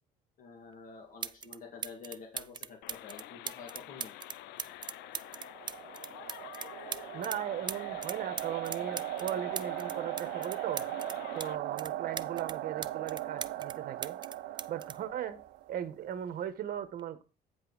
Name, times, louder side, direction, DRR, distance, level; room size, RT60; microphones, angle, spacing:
voice 1, 0.4-4.1, left 5 dB, 55° left, 2 dB, 1.9 m, -48 dB
sound 1, 0.7-0.8 1.2-1.6 1.8-7.4 7.7-11.5 11.8-13.8 14.0-15.9 16.8-17.0, right 7 dB, 25° right, 0.4 m, -40 dB
sound 2, 2.8-11.6, left 16 dB, 80° left, 0.4 m, -48 dB
sound 3, 5.0-15.9, right 14 dB, 90° right, 0.6 m, -39 dB
voice 2, 7.1-10.8 11.3-14.2 14.7-15.4 15.7-17.2, right 10 dB, 60° right, 11 dB, 1.2 m, -38 dB
9.0 x 5.4 x 4.0 m, 0.33 s
cardioid pair, 110°, 17 cm